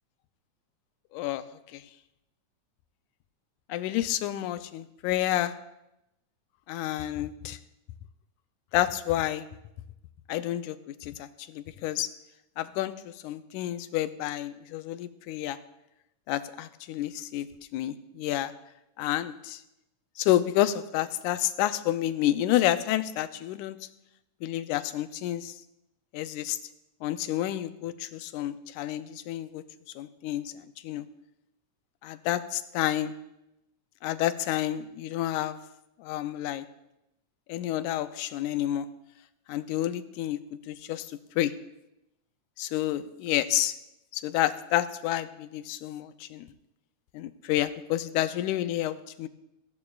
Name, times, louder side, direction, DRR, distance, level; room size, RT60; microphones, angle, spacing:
voice 1, 1.1-1.4 1.7-1.8 3.7-5.5 6.7-7.6 8.7-9.4 10.3-10.8 11.0-12.1 12.6-12.9 13.2-15.6 16.3-17.5 17.7-18.5 19.0-19.6 20.2-23.8 24.4-25.5 26.1-26.6 27.0-29.6 30.0-30.4 30.8-31.1 32.0-33.1 34.0-35.6 36.0-36.7 37.5-38.9 39.5-40.4 40.7-41.1 41.4-41.5 42.6-43.7 44.1-46.5 47.1-49.3, left 13 dB, 90° left, 12 dB, 2.1 m, -29 dB
17.5 x 15.0 x 2.4 m, 0.87 s
omnidirectional pair, 3.4 m